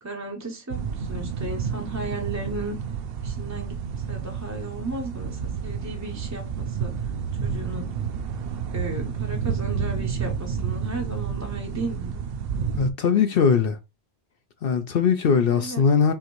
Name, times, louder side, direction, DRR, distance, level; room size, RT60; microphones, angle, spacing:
voice 1, 0.0-2.8 3.2-7.1 7.4-7.9 8.7-12.2 15.5-15.8, right 2 dB, 20° right, 0.6 m, -35 dB
sound 1, 0.7-12.9, right 6 dB, 70° right, 0.7 m, -30 dB
voice 2, 12.8-13.8 14.6-16.1, left 6 dB, 65° left, 0.7 m, -20 dB
5.7 x 2.6 x 3.0 m
omnidirectional pair, 1.1 m